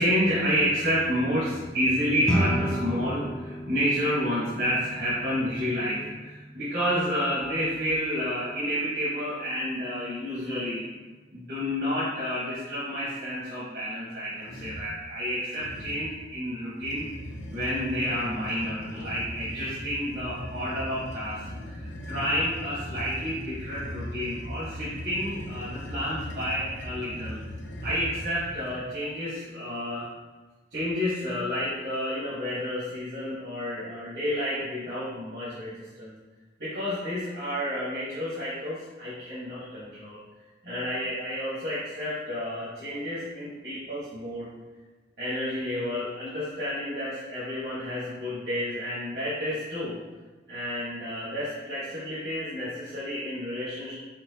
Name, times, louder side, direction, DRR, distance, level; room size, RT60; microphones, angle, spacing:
voice 1, 0.0-10.8 11.3-17.1 17.5-27.4 27.8-30.1 30.7-36.1 36.6-40.2 40.6-44.5 45.2-50.0 50.5-53.9, equal, 60° right, -11 dB, 1.4 m, -30 dB
sound 1, 2.2-11.7, equal, 5° left, 0.4 m, -35 dB
sound 2, 14.4-14.9 15.5-16.2 16.7-28.8, left 1 dB, 85° left, 0.6 m, -39 dB
4.5 x 4.3 x 2.8 m, 1.2 s
head